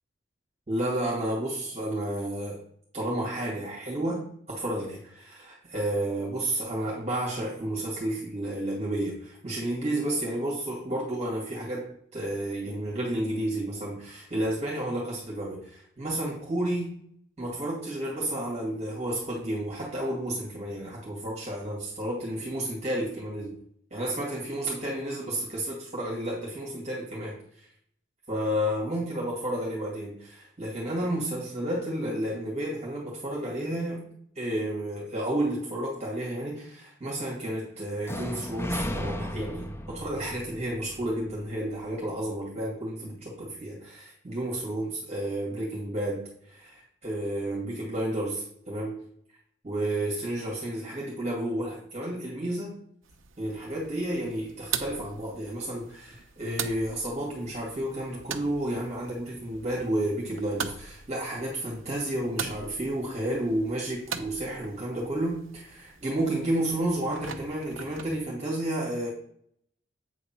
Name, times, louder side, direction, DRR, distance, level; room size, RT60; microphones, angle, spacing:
voice 1, 0.7-2.6 2.9-17.0 17.4-23.6 23.9-27.7 28.3-34.1 34.4-49.0 49.6-52.8 53.4-69.1, right 1 dB, 35° right, -3 dB, 2.1 m, -31 dB
sound 1, 38.0-42.0, left 1 dB, 15° left, 0.6 m, -35 dB
sound 2, 53.0-68.2, right 7 dB, 85° right, 0.7 m, -41 dB
8.3 x 3.9 x 5.8 m, 0.66 s
head